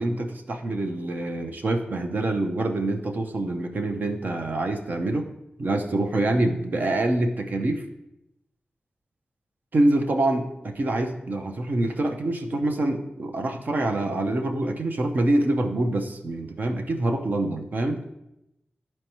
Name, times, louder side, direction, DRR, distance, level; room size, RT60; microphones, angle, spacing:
voice 1, 0.0-5.3 5.6-7.8 9.7-18.0, right 2 dB, 55° right, 4 dB, 0.8 m, -25 dB
12.5 x 4.4 x 3.0 m, 0.88 s
wide cardioid pair, 125°, 4 cm